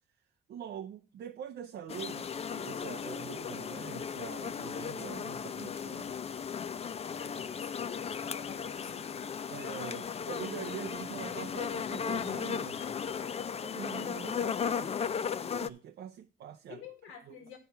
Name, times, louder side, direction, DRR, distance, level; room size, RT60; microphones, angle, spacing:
voice 1, 0.5-6.1 9.5-12.8 13.6-15.1 15.4-16.8 17.3-17.6, right 9 dB, 60° right, 0.6 m, -44 dB
sound 1, 1.9-15.7, left 7 dB, 30° left, 0.4 m, -36 dB
voice 2, 7.2-8.2 8.4-9.2 16.7-17.6, left 7 dB, 85° left, 1.9 m, -49 dB
9.7 x 4.6 x 6.7 m
cardioid pair, 90°, 20 cm